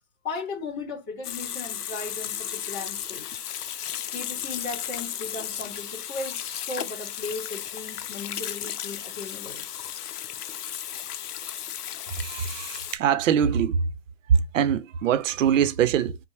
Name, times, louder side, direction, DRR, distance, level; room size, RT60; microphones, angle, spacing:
voice 1, 0.2-3.4 4.1-9.6, left 3 dB, 45° left, 2.9 m, -36 dB
Water tap faucet / Sink (filling or washing), 1.2-13.0, left 10 dB, 85° left, 0.6 m, -34 dB
voice 2, 12.1-13.9 14.3-16.2, right 8 dB, 55° right, 0.7 m, -23 dB
5.4 x 2.1 x 3.2 m
hypercardioid pair, 145°, 45 cm